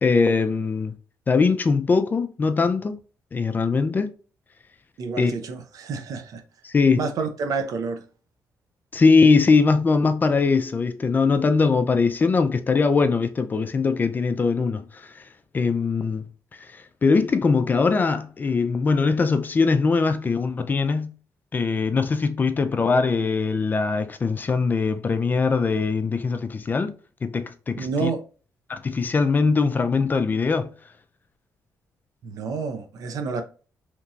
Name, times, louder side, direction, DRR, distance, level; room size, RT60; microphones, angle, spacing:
voice 1, 0.0-1.0 1.3-2.9 3.3-4.1 5.2-5.3 6.6-7.1 8.9-14.9 15.5-16.3 16.7-21.1 21.5-26.9 27.2-28.1 28.7-30.7, left 4 dB, 30° left, 0.3 m, -21 dB
voice 2, 5.0-6.4 7.0-8.0 27.8-28.2 32.2-33.4, right 4 dB, 70° right, 0.5 m, -29 dB
2.9 x 2.7 x 2.3 m
cardioid pair, 115°, 6 cm